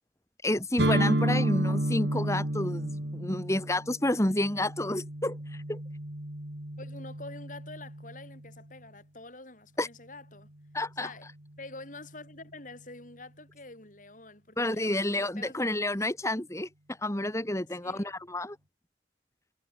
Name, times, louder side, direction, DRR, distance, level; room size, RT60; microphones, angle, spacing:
voice 1, 0.4-5.4 5.7-5.8 9.8-9.9 10.7-11.1 14.6-16.7 17.0-18.6, left 1 dB, 15° left, 2.2 m, -29 dB
sound 1, 0.8-8.6, right 1 dB, 75° right, 3.4 m, -31 dB
voice 2, 6.8-10.5 11.0-11.3 11.6-15.7 17.8-18.1, left 2 dB, 45° left, 7.0 m, -47 dB
head